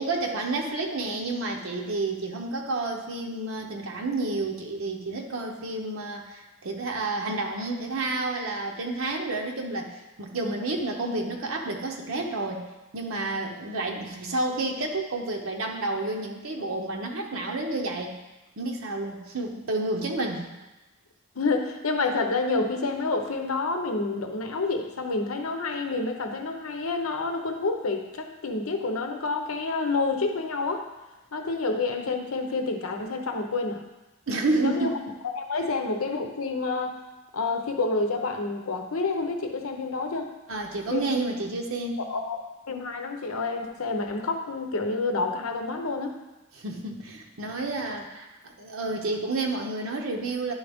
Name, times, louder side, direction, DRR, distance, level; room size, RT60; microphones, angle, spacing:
voice 1, 0.0-9.9 10.2-12.7 12.9-18.2 18.6-20.5 34.3-35.0 40.5-42.0 46.5-50.5, right 2 dB, 70° right, 1 dB, 0.8 m, -30 dB
voice 2, 21.3-30.9 31.3-33.8 34.5-34.9 35.2-37.0 37.3-40.3 40.9-41.1 42.0-42.4 42.7-46.2, left 3 dB, 75° left, 5 dB, 0.8 m, -28 dB
10.5 x 3.9 x 3.5 m, 1.1 s
head